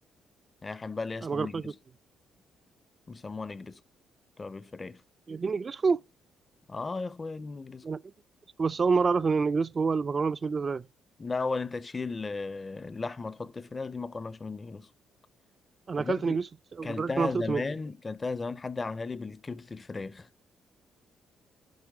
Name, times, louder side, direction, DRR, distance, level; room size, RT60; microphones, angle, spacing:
voice 1, 0.6-1.8 3.1-3.8 4.4-5.0 6.7-7.9 11.2-14.9 16.0-16.4 16.8-20.3, left 3 dB, 30° left, 0.6 m, -35 dB
voice 2, 1.2-1.7 5.3-6.0 7.8-8.0 8.6-10.8 15.9-16.4 16.8-17.7, right 4 dB, 35° right, 0.4 m, -27 dB
10.5 x 6.0 x 3.5 m
cardioid pair, 90°, 0 cm